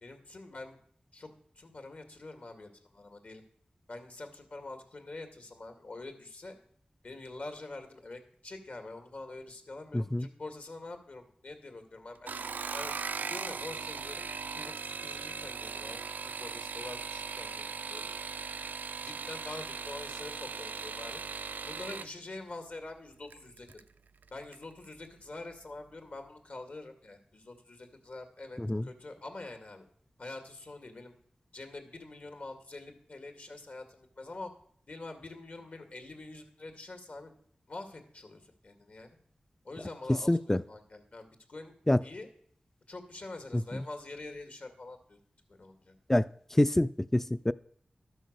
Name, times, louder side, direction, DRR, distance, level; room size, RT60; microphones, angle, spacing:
voice 1, 0.0-0.8 1.1-1.3 1.6-3.4 3.9-6.6 7.0-12.3 12.7-18.0 19.0-23.7 24.3-29.9 30.2-31.1 31.5-34.5 34.9-37.3 37.7-39.2 39.6-41.7 42.0-42.3 42.9-45.2 45.5-45.9, left 2 dB, 60° left, 6 dB, 1.9 m, -45 dB
voice 2, 9.9-10.3 28.6-28.9 40.3-40.6 41.9-42.0 43.5-43.6 46.1-46.3 46.6-47.5, left 1 dB, 10° left, 16 dB, 0.3 m, -26 dB
sound 1, 12.2-22.1 23.3-23.8 24.2-24.6 24.9-25.0, right 5 dB, 85° right, 0.4 m, -39 dB
12.5 x 6.2 x 6.6 m, 0.62 s
wide cardioid pair, 75°, 3 cm